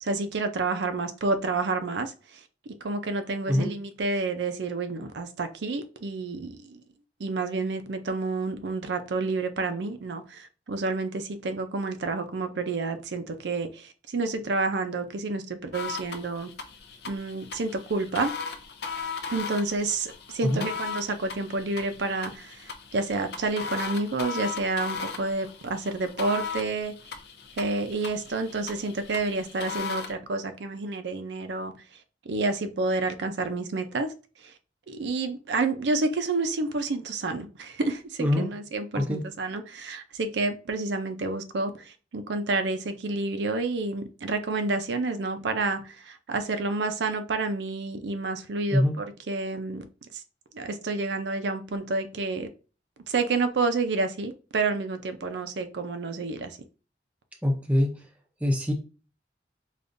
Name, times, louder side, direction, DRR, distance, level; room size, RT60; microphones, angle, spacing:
voice 1, 0.0-6.8 7.2-16.5 17.1-18.3 19.3-26.9 27.6-31.7 32.3-34.1 34.4-34.5 34.9-49.8 50.1-50.2 50.5-52.5 53.1-56.6, right 3 dB, 85° right, 0.5 m, -29 dB
sound 1, 15.7-30.1, left 5 dB, 70° left, 0.5 m, -37 dB
voice 2, 38.2-38.5 38.9-39.2 48.7-48.9 57.4-58.0 58.4-58.7, left 1 dB, 10° right, 0.5 m, -24 dB
5.1 x 2.4 x 2.6 m
head